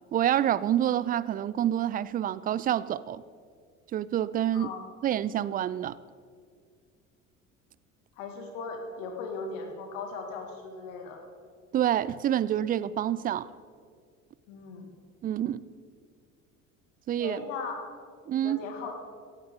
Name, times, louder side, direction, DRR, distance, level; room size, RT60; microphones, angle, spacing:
voice 1, 0.1-3.2 3.9-4.7 5.0-6.0 11.7-13.5 15.2-15.6 17.1-17.4 18.3-18.6, right 11 dB, 25° right, 19 dB, 0.4 m, -27 dB
voice 2, 4.5-4.8 8.2-11.2 14.5-14.9 17.2-17.7 18.4-18.9, left 4 dB, 65° left, 3 dB, 2.4 m, -38 dB
17.0 x 15.0 x 3.9 m, 2.1 s
figure-of-eight pair, 60°, 40 cm